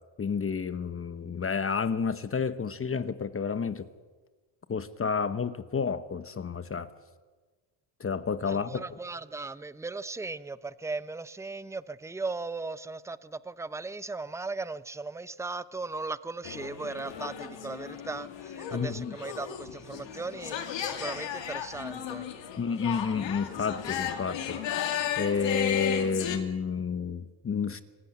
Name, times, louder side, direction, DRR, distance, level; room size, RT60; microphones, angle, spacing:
voice 1, 0.2-3.9 4.7-6.9 8.0-8.8 18.7-19.2 22.6-24.6 25.2-27.8, left 5 dB, 30° left, 13 dB, 1.0 m, -30 dB
voice 2, 8.4-22.3, right 3 dB, 5° right, 15 dB, 0.6 m, -37 dB
sound 1, 16.4-26.4, left 9 dB, 70° left, 2.6 m, -35 dB
25.0 x 12.0 x 9.2 m, 1.4 s
cardioid pair, 95°, 46 cm